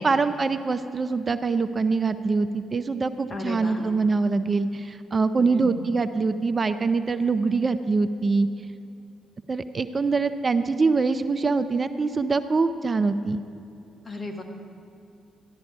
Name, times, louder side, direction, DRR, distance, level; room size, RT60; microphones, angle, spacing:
voice 1, 0.0-8.5 9.5-13.4, right 4 dB, 35° right, 11 dB, 0.5 m, -24 dB
voice 2, 3.3-3.9 5.4-5.9 14.0-14.4, left 2 dB, 40° left, 3 dB, 1.8 m, -35 dB
14.0 x 11.5 x 4.7 m, 2.8 s
hypercardioid pair, 45°, 0 cm